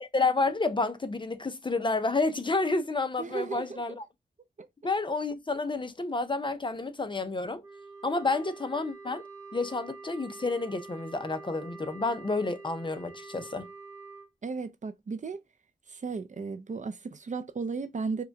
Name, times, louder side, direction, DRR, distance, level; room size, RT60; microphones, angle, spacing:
voice 1, 0.0-4.0 4.8-7.6 8.0-9.2 9.5-13.7, left 3 dB, 25° left, 0.5 m, -30 dB
voice 2, 3.2-3.8 4.6-4.7 14.4-15.4 15.9-18.2, right 4 dB, 40° right, 0.5 m, -35 dB
Wind instrument woodwind instrument, 7.6-14.3, right 4 dB, 15° right, 1.0 m, -46 dB
4.7 x 2.2 x 2.5 m
wide cardioid pair, 100°, 19 cm